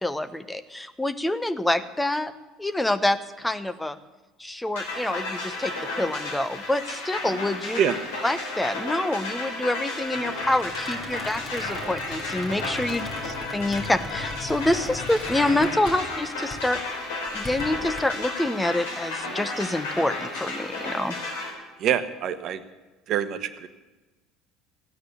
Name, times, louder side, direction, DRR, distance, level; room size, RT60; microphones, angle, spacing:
voice 1, 0.0-2.3 2.6-4.0 4.4-7.8 8.2-13.1 13.5-16.8 17.3-21.2, left 1 dB, 10° left, 12 dB, 1.0 m, -26 dB
sound 1, 4.8-21.5, left 2 dB, 80° left, 3.8 m, -33 dB
Squeak, 10.1-16.2 16.5-16.8 17.3-18.0, left 3 dB, 25° left, 6.3 m, -39 dB
voice 2, 21.8-22.6 23.1-23.7, right 9 dB, 55° right, 11 dB, 1.2 m, -25 dB
15.5 x 9.6 x 8.3 m, 1.2 s
hypercardioid pair, 70°, 0 cm